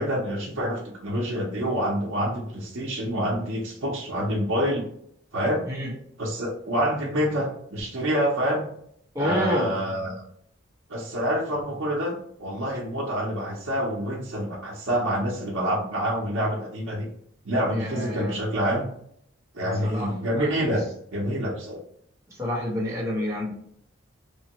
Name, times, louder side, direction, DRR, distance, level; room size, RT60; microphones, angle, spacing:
voice 1, 0.0-4.9 5.3-5.6 6.2-8.6 9.2-10.2 10.9-17.1 17.5-18.9 19.5-21.8, equal, 75° right, -3 dB, 0.7 m, -27 dB
voice 2, 9.1-9.7 17.7-18.4 19.8-20.5 22.3-23.5, equal, 15° right, -6 dB, 1.0 m, -28 dB
3.1 x 2.2 x 2.8 m, 0.68 s
head